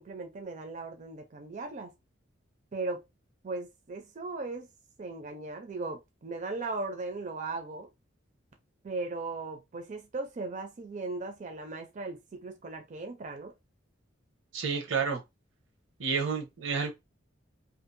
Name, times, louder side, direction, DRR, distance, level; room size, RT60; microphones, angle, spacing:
voice 1, 0.0-1.9 2.7-3.0 3.4-4.7 5.0-7.9 8.8-13.5, right 3 dB, 40° right, 0.4 m, -37 dB
voice 2, 14.5-15.2 16.0-16.9, right 5 dB, 90° right, 0.8 m, -30 dB
2.6 x 2.4 x 2.5 m
head